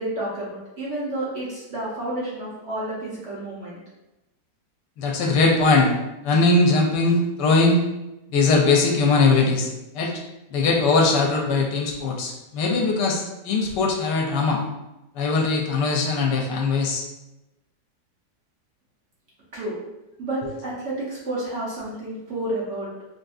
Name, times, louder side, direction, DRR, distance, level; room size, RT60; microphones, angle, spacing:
voice 1, 0.0-3.8 19.5-19.7 20.2-22.9, right 1 dB, 55° right, -7 dB, 0.9 m, -30 dB
voice 2, 5.0-5.9 6.2-7.8 8.3-10.1 10.5-14.6 15.1-17.0, left 3 dB, 85° left, 1 dB, 1.2 m, -20 dB
3.5 x 2.6 x 2.3 m, 0.96 s
omnidirectional pair, 1.8 m